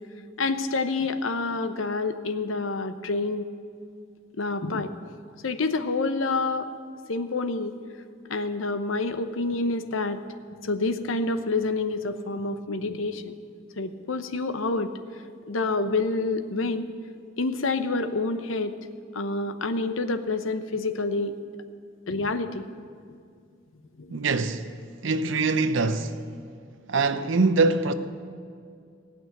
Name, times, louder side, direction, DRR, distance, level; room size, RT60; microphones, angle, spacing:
voice 1, 0.4-3.5 4.4-4.9 5.4-6.7 7.1-7.7 8.3-10.2 10.6-13.3 13.8-14.9 15.5-16.9 17.4-18.8 19.1-21.3 22.1-22.6 24.0-24.2, left 3 dB, 80° left, 0.8 m, -27 dB
voice 2, 24.1-24.8 25.0-26.3 26.9-27.9, right 3 dB, 70° right, 0.7 m, -23 dB
16.5 x 6.3 x 9.2 m
head